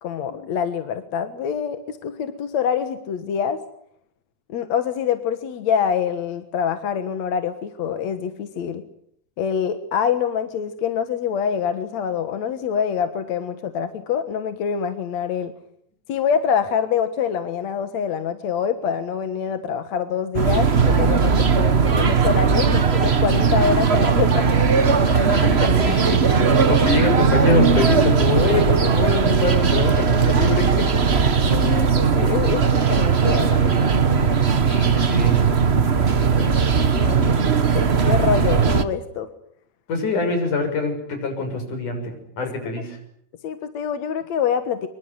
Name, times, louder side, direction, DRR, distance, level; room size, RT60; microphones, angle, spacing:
voice 1, 0.0-3.6 4.5-8.8 9.4-15.5 16.1-24.7 31.5-34.0 36.4-36.5 37.0-37.3 37.7-39.3 43.4-44.9, left 7 dB, 65° left, 9 dB, 2.6 m, -25 dB
sound 1, 20.3-38.8, right 5 dB, 70° right, 0.6 m, -18 dB
voice 2, 25.1-31.0 34.7-35.4 39.9-43.0, left 3 dB, 85° left, 6 dB, 8.1 m, -25 dB
25.0 x 23.5 x 9.7 m, 0.70 s
omnidirectional pair, 3.5 m